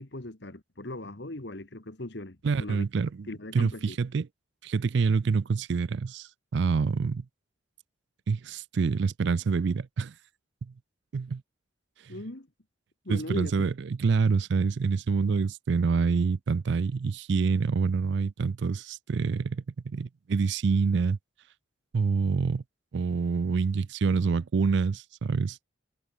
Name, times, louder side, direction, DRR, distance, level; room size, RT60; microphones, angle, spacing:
voice 1, 0.0-2.8 3.3-4.0 12.1-12.5 13.0-13.7, left 1 dB, 55° left, 1.7 m, -39 dB
voice 2, 2.4-4.3 4.6-7.2 8.3-10.1 10.6-10.7 11.1-11.4 13.1-21.2 21.9-22.6 22.9-25.6, right 5 dB, 60° right, 0.4 m, -27 dB
head